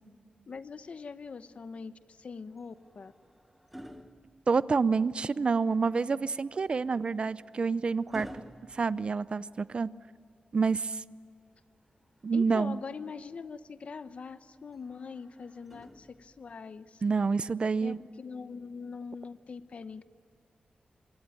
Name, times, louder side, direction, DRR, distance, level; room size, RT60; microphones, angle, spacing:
voice 1, 0.5-3.1 12.3-17.0 17.8-20.0, left 5 dB, 50° left, 12 dB, 0.9 m, -43 dB
sound 1, 2.6-5.0 6.6-9.8 11.6-12.7 14.7-16.6 17.8-18.0, equal, 5° right, 1.2 m, -51 dB
voice 2, 4.5-8.4 8.7-9.9 10.5-11.0 12.2-12.8 17.0-18.0, right 4 dB, 35° right, 17 dB, 0.5 m, -28 dB
25.5 x 23.0 x 9.2 m, 2.5 s
wide cardioid pair, 165°, 3 cm